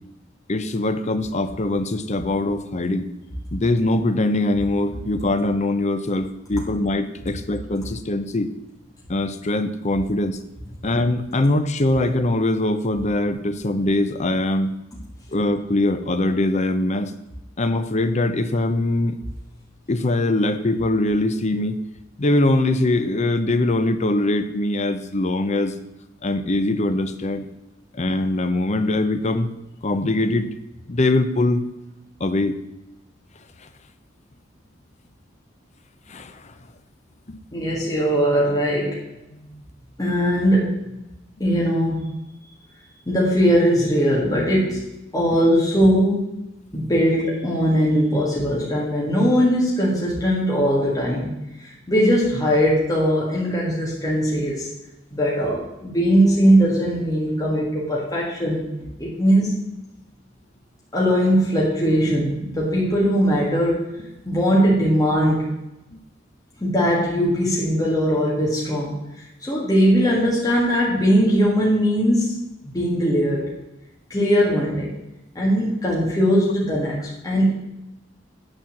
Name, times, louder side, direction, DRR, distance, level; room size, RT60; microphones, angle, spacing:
voice 1, 0.5-3.1 3.5-8.5 9.1-10.4 10.8-14.7 15.3-17.1 17.6-19.2 19.9-21.8 22.2-25.8 26.2-27.5 27.9-29.5 29.8-30.5 30.9-31.6 32.2-32.6 33.6-33.7 36.1-36.5 37.3-37.4 39.4-39.6 65.9-66.0, left 2 dB, 35° left, 10 dB, 0.7 m, -22 dB
voice 2, 37.5-39.0 40.0-40.7 41.4-42.1 43.1-44.8 45.1-46.4 46.7-51.3 51.6-54.7 55.1-58.7 59.0-59.6 60.9-63.9 64.3-65.6 66.6-69.0 69.4-72.4 72.7-73.5 74.1-74.9 75.4-77.5, equal, 20° left, -5 dB, 1.8 m, -20 dB
9.0 x 4.3 x 7.2 m, 0.92 s
head